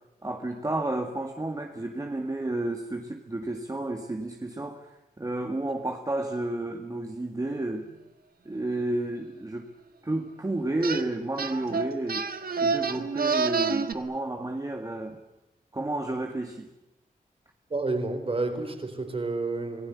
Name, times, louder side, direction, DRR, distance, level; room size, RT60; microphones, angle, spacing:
voice 1, 0.2-7.9 8.5-9.7 10.0-12.3 12.6-15.2 15.7-16.7, right 2 dB, 25° right, 3 dB, 2.0 m, -31 dB
sound 1, 10.8-11.0 11.4-13.9, right 5 dB, 85° right, 1.6 m, -28 dB
voice 2, 17.7-19.9, right 3 dB, 40° right, 7 dB, 4.0 m, -30 dB
27.0 x 18.5 x 8.4 m, 0.96 s
wide cardioid pair, 125°, 15 cm